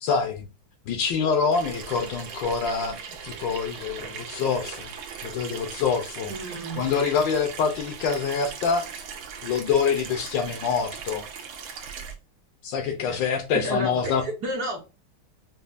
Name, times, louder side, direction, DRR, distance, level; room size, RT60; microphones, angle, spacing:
voice 1, 0.0-0.5 0.9-3.0 3.2-4.9 5.2-6.3 6.8-8.9 9.4-11.2 12.6-14.2, left 6 dB, 70° left, 1.2 m, -25 dB
Water tap faucet / Sink (filling or washing), 1.5-12.2, right 7 dB, 85° right, 1.5 m, -39 dB
voice 2, 6.3-6.8 12.9-13.2 13.5-14.8, right 1 dB, 60° right, 1.1 m, -31 dB
5.5 x 2.2 x 2.5 m
omnidirectional pair, 2.2 m